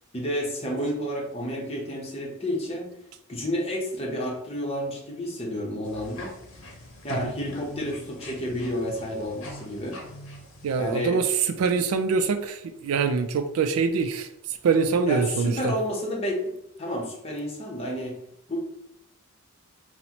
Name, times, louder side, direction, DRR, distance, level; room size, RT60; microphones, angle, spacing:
voice 1, 0.1-3.0 3.3-6.4 7.0-10.0 10.8-11.2 15.1-18.2 18.5-18.6, equal, 25° left, -2 dB, 0.7 m, -30 dB
sound 1, 5.8-11.0, left 1 dB, 60° left, 0.8 m, -43 dB
voice 2, 10.6-14.3 14.6-15.7, right 5 dB, 75° right, 8 dB, 0.3 m, -24 dB
4.0 x 2.1 x 2.8 m, 0.82 s
head